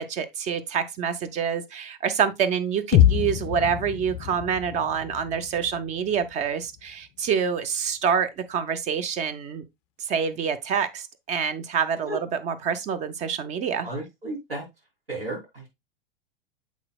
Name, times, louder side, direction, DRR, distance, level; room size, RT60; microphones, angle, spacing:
voice 1, 0.0-9.6 10.1-13.9, right 7 dB, 25° right, 0.6 m, -27 dB
sound 1, 2.9-6.9, left 11 dB, 30° left, 0.4 m, -25 dB
voice 2, 13.8-14.7 15.1-15.7, right 2 dB, 80° right, 3.2 m, -33 dB
7.2 x 5.8 x 2.3 m
figure-of-eight pair, 90°, 29 cm